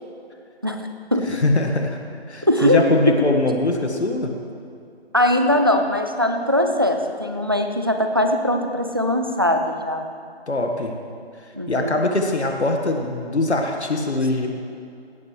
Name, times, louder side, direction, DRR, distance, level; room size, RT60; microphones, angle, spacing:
voice 1, 1.3-2.0 2.3-4.3 10.5-10.9 11.7-14.5, left 2 dB, 85° left, 3 dB, 1.6 m, -22 dB
voice 2, 2.4-2.8 3.1-3.2 5.1-10.1 11.5-12.0, left 1 dB, 20° right, 5 dB, 0.4 m, -20 dB
16.5 x 11.0 x 3.2 m, 2.5 s
figure-of-eight pair, 155°, 33 cm